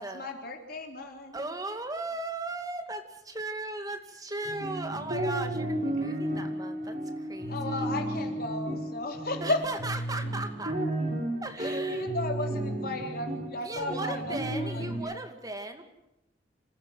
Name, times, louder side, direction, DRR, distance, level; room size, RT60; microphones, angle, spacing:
voice 1, 0.0-1.5 7.5-9.7 11.6-14.4 14.6-15.2, left 2 dB, 55° left, 3 dB, 3.9 m, -35 dB
voice 2, 1.3-7.6 9.4-10.8 11.4-12.0 13.6-15.8, right 2 dB, 20° right, 6 dB, 2.3 m, -37 dB
sound 1, 4.4-15.0, right 1 dB, 50° right, 6.1 m, -33 dB
27.0 x 15.0 x 7.8 m, 0.86 s
head